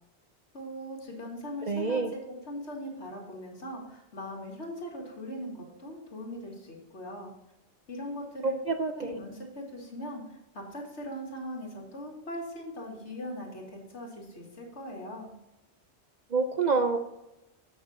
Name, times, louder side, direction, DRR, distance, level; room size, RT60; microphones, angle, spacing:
voice 1, 0.5-2.0 2.5-7.3 7.9-10.2 10.5-15.3, equal, 80° left, -1 dB, 2.3 m, -40 dB
voice 2, 1.7-2.1 8.4-9.1 16.3-17.0, right 4 dB, 50° right, 6 dB, 0.5 m, -27 dB
8.2 x 6.1 x 4.2 m, 0.92 s
omnidirectional pair, 1.2 m